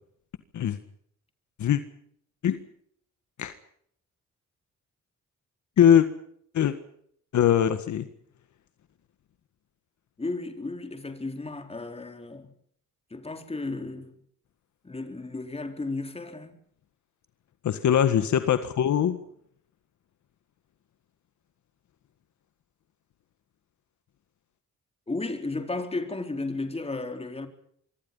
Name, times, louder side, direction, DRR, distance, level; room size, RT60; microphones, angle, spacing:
voice 1, 7.3-8.1 17.6-19.2, left 9 dB, 70° left, 1.8 m, -21 dB
voice 2, 10.2-12.5 13.1-14.2 14.8-16.6 25.1-27.5, left 3 dB, 20° left, 4.2 m, -34 dB
26.0 x 23.0 x 5.6 m
cardioid pair, 105°, 31 cm